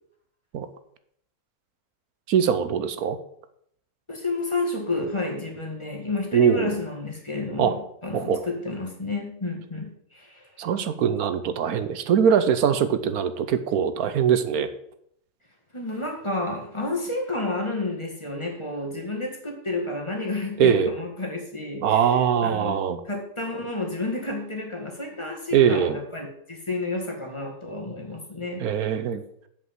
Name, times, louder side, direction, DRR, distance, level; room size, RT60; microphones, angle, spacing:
voice 1, 2.3-3.2 6.3-6.7 7.6-7.7 8.1-8.4 10.6-14.7 20.6-20.9 21.8-23.0 25.5-26.0 28.6-29.2, right 8 dB, 80° right, 11 dB, 1.2 m, -22 dB
voice 2, 4.1-10.5 15.7-22.0 22.4-22.8 23.1-28.6, left 2 dB, 20° left, 0 dB, 1.9 m, -31 dB
8.1 x 5.4 x 7.4 m, 0.70 s
omnidirectional pair, 1.6 m